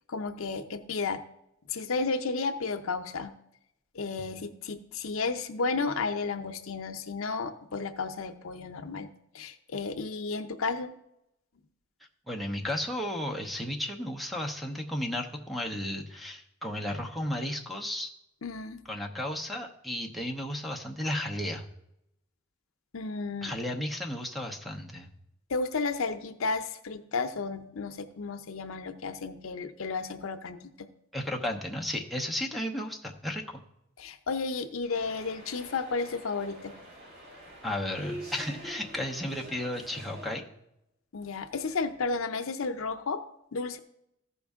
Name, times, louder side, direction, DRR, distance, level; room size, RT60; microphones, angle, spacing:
voice 1, 0.1-1.2 1.7-3.3 3.9-9.1 9.3-10.9 18.4-18.8 22.9-23.5 25.5-30.9 34.0-36.8 41.1-43.2 43.5-43.8, left 4 dB, 80° left, 9 dB, 0.6 m, -33 dB
voice 2, 12.3-18.1 18.9-21.6 23.4-25.1 31.1-33.6 37.6-40.4, left 1 dB, ahead, 3 dB, 0.8 m, -34 dB
sound 1, 34.9-40.4, equal, 55° right, 3.8 m, -45 dB
14.0 x 5.3 x 3.5 m, 0.83 s
head